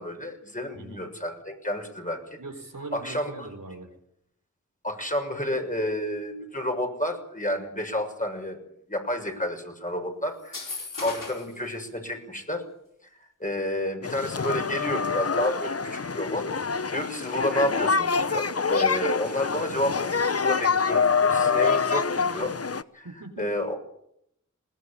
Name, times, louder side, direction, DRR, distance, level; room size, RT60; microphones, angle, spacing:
voice 1, 0.0-2.4 2.9-3.5 4.8-8.6 8.9-12.6 13.2-16.5 16.9-22.5 22.9-23.1 23.4-23.8, left 1 dB, 25° left, 4 dB, 6.5 m, -30 dB
voice 2, 0.7-1.1 2.4-3.9 23.0-23.5, right 3 dB, 85° right, 5 dB, 4.1 m, -40 dB
sound 1, 10.4-11.6, left 3 dB, 85° left, 4.9 m, -36 dB
sound 2, 14.0-22.8, left 5 dB, 50° left, 0.8 m, -26 dB
21.0 x 18.5 x 8.7 m, 0.76 s
wide cardioid pair, 45°, 31 cm